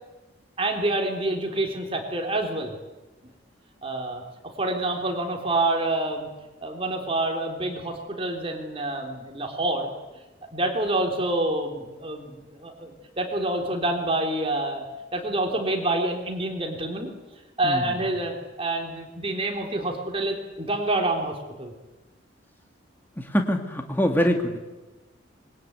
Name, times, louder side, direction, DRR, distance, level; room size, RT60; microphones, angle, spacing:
voice 1, 0.6-2.8 3.8-4.2 4.6-6.3 6.6-9.9 10.5-14.9 15.1-17.1 17.6-21.7, right 2 dB, 30° right, 2 dB, 3.6 m, -27 dB
voice 2, 17.6-18.0 23.2-24.6, equal, 10° left, 4 dB, 2.0 m, -24 dB
25.5 x 22.0 x 9.5 m, 1.1 s
head